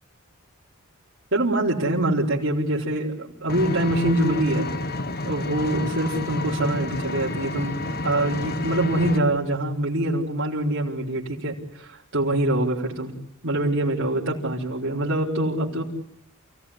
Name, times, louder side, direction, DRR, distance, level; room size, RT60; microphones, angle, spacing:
voice 1, 1.3-4.7 5.2-7.8 8.0-13.1 13.4-15.8, right 1 dB, 60° right, -5 dB, 4.3 m, -24 dB
Vehicle, 3.5-9.2, left 2 dB, 50° left, 1.4 m, -30 dB
28.5 x 17.0 x 10.0 m, 0.75 s
head